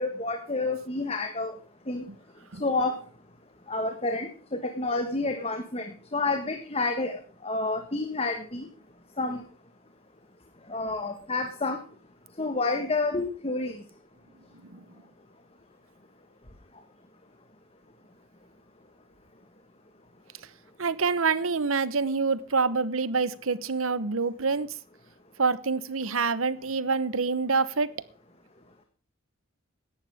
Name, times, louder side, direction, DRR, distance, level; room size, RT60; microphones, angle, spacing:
voice 1, 0.0-1.5 1.9-2.0 2.6-3.0 3.7-8.7 9.2-9.4 10.7-11.8 12.4-13.8, left 3 dB, 30° left, 6 dB, 1.5 m, -29 dB
voice 2, 20.8-24.7 25.4-27.9, right 4 dB, 85° right, 16 dB, 1.1 m, -26 dB
16.5 x 11.5 x 3.6 m, 0.42 s
head